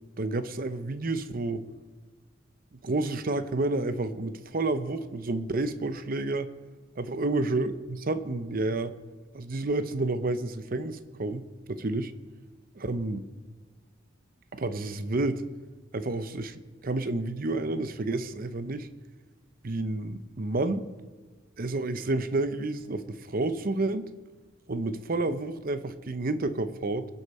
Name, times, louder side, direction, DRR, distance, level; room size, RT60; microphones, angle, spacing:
voice 1, 0.2-1.6 2.8-6.5 7.0-8.9 9.3-12.1 12.7-13.2 14.5-15.4 15.9-18.9 19.6-20.9 21.6-24.1 24.7-27.1, right 2 dB, 45° right, 12 dB, 0.7 m, -30 dB
22.0 x 8.1 x 4.3 m, 1.3 s
head